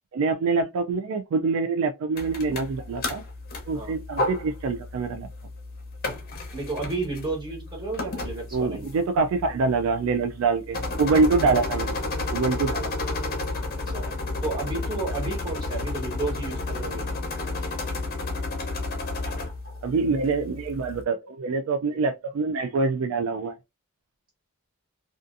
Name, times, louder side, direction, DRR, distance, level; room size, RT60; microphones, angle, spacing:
voice 1, 0.1-3.2 3.7-5.3 8.5-12.0 12.3-12.9 19.8-23.5, right 4 dB, 70° right, 0.3 m, -25 dB
sound 1, 2.2-21.0, left 2 dB, 45° left, 0.7 m, -32 dB
voice 2, 6.5-8.9 13.9-14.1 14.4-17.1 21.9-22.0, right 3 dB, 20° right, 1.0 m, -32 dB
2.5 x 2.4 x 2.4 m
head